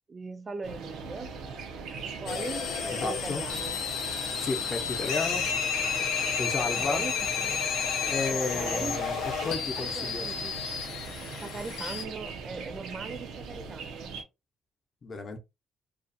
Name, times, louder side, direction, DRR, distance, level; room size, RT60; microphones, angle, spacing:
voice 1, 0.1-1.3 2.0-3.8 4.8-4.9 6.6-7.7 8.3-9.1 9.8-10.6 11.4-14.2, right 4 dB, 35° right, 0.3 m, -40 dB
sound 1, 0.6-14.2, right 5 dB, 85° right, 0.5 m, -41 dB
sound 2, 2.3-12.0, left 7 dB, 85° left, 0.5 m, -31 dB
voice 2, 2.9-3.4 4.4-5.5 6.4-7.0 8.1-10.3 15.0-15.4, left 3 dB, 40° left, 0.7 m, -33 dB
2.4 x 2.3 x 2.5 m
cardioid pair, 90°, 0 cm